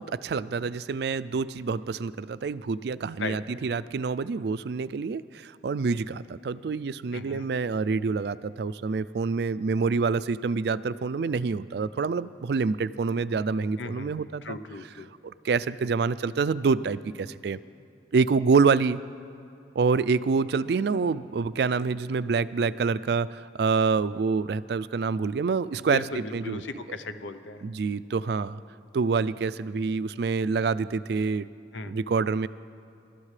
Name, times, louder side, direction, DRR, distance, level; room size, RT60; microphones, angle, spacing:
voice 1, 0.0-14.6 15.2-17.6 18.1-19.0 19.8-26.6 27.6-28.6 28.9-31.5 31.9-32.5, right 4 dB, 60° right, 16 dB, 0.3 m, -27 dB
voice 2, 7.1-7.5 13.8-15.1 25.8-27.6 31.7-31.9, left 3 dB, 85° left, 11 dB, 0.7 m, -37 dB
28.5 x 13.0 x 3.3 m, 2.6 s
head